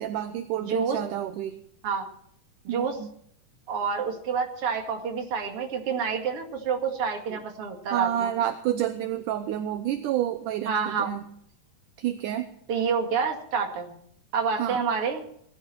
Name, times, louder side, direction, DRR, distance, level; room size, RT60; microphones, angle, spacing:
voice 1, 0.0-1.6 2.7-3.1 7.3-7.4 7.9-11.3 12.0-12.5 14.6-14.8, right 11 dB, 75° right, 9 dB, 2.3 m, -29 dB
voice 2, 0.7-1.0 1.8-2.0 2.6-3.0 3.7-8.3 10.7-11.1 12.7-13.9 14.3-15.2, right 6 dB, 45° right, 3 dB, 2.8 m, -28 dB
20.0 x 12.5 x 4.4 m, 0.69 s
omnidirectional pair, 4.0 m